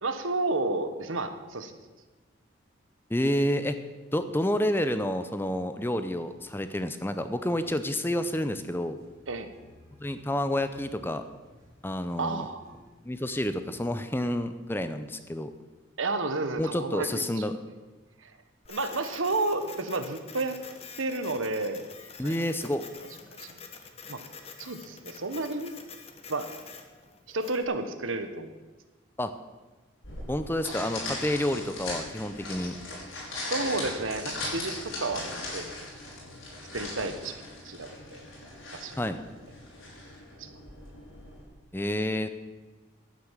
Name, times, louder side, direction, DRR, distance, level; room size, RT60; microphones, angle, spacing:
voice 1, 0.0-1.8 9.3-9.5 12.2-12.7 16.0-17.4 18.2-18.3 18.7-20.6 21.0-21.8 22.2-22.3 23.3-23.5 24.1-24.2 24.6-25.7 26.3-26.5 27.3-28.5 33.3-35.7 36.7-38.2 38.7-39.0 40.4-40.6, right 2 dB, 85° right, 9 dB, 1.2 m, -31 dB
voice 2, 3.1-3.8 4.1-9.0 10.0-11.2 11.8-12.5 13.0-15.5 16.5-17.6 22.2-22.8 29.2-29.3 30.3-32.8 39.0-39.2 41.7-42.3, left 1 dB, 10° left, 10 dB, 0.6 m, -29 dB
sound 1, 6.2-14.3, equal, 15° right, 3.0 m, -57 dB
Printer, 18.6-27.6, left 5 dB, 30° left, 1.2 m, -47 dB
sound 2, 30.0-41.4, left 2 dB, 85° left, 5.3 m, -39 dB
11.5 x 9.4 x 7.4 m, 1.3 s
head